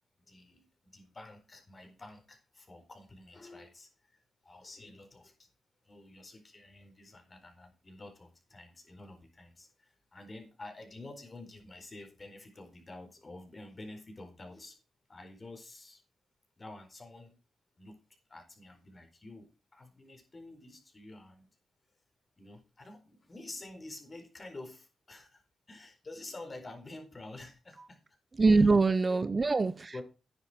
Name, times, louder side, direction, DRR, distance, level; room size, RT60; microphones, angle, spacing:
voice 1, 0.3-0.7 0.9-4.2 4.4-5.5 5.8-14.8 15.1-16.0 16.6-17.4 17.8-18.0 18.3-21.5 22.4-25.4 25.7-28.0 28.5-28.7 29.1-29.4 29.9-30.0, left 2 dB, 35° left, 4.3 m, -49 dB
voice 2, 28.4-30.0, right 3 dB, 40° right, 0.9 m, -24 dB
10.0 x 10.0 x 4.5 m
supercardioid pair, 45°, 0 cm